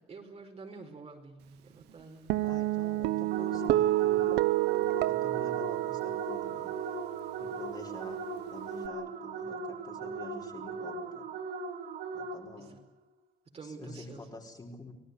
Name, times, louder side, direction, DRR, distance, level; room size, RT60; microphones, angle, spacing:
voice 1, 0.1-2.3 12.6-12.8 13.5-14.2, right 4 dB, 35° right, 3 dB, 5.0 m, -48 dB
Guitar, 2.3-8.9, right 16 dB, 85° right, 1.0 m, -30 dB
voice 2, 2.4-4.4 4.8-7.0 7.4-11.3 12.1-12.8 13.6-14.9, left 2 dB, 25° left, 1 dB, 4.6 m, -48 dB
sound 1, 3.3-12.7, right 4 dB, 60° right, 2.6 m, -39 dB
25.5 x 18.0 x 9.8 m, 0.91 s
cardioid pair, 110°, 17 cm